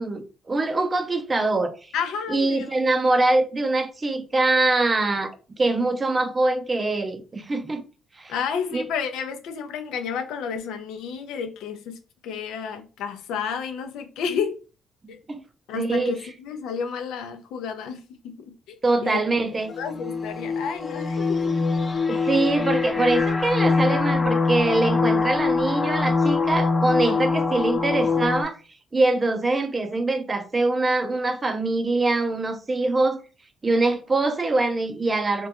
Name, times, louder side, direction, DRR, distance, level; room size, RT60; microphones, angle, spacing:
voice 1, 0.0-1.8 2.3-5.3 5.6-7.8 8.2-8.3 8.7-8.8 15.0-15.4 15.7-16.2 18.8-19.7 22.1-28.6 28.9-33.2 33.6-35.5, right 2 dB, 30° right, 0.4 m, -23 dB
voice 2, 1.9-2.7 8.3-14.6 15.1-15.2 15.7-19.4 19.8-21.6 27.0-27.2, left 6 dB, 90° left, 0.4 m, -31 dB
sound 1, 19.4-28.4, left 4 dB, 30° left, 0.5 m, -23 dB
2.3 x 2.2 x 2.8 m
cardioid pair, 90°, 0 cm